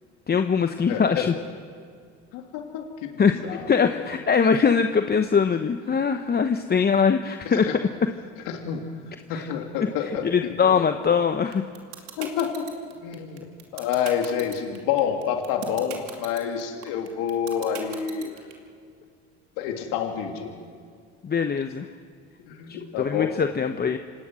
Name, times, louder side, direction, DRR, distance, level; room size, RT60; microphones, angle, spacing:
voice 1, 0.3-1.3 3.2-7.7 9.3-9.5 10.2-11.7 21.2-21.9 23.0-24.0, left 6 dB, 30° left, 8 dB, 1.0 m, -22 dB
voice 2, 0.9-1.3 2.3-3.7 3.9-4.2 7.4-7.8 8.5-8.9 9.3-10.8 12.2-12.7 13.0-13.5 13.7-18.3 19.6-20.5 22.5-23.4, left 8 dB, 70° left, 3 dB, 3.1 m, -28 dB
sound 1, 11.5-18.5, right 10 dB, 75° right, 2.7 m, -38 dB
26.5 x 17.5 x 6.4 m, 2.2 s
hypercardioid pair, 65°, 34 cm